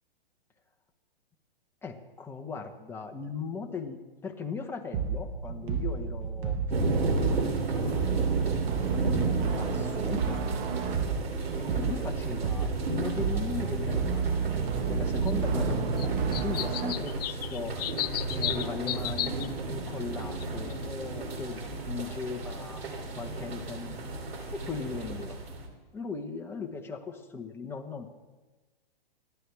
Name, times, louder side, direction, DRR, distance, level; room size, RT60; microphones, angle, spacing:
voice 1, 1.8-6.6 7.7-8.2 8.5-10.6 11.6-14.3 14.8-17.8 18.2-22.9 23.2-24.1 24.5-25.4 25.9-28.1, left 5 dB, 10° left, 4 dB, 1.1 m, -38 dB
sound 1, 4.9-16.9, right 6 dB, 35° right, 1.4 m, -31 dB
sound 2, 6.7-25.7, right 2 dB, 90° right, 3.1 m, -33 dB
sound 3, 15.3-15.4 16.0-16.1 16.3-19.5 20.4-20.5 20.7-20.8, left 13 dB, 45° left, 0.6 m, -33 dB
27.5 x 11.5 x 3.5 m, 1.3 s
hypercardioid pair, 135°, 30 cm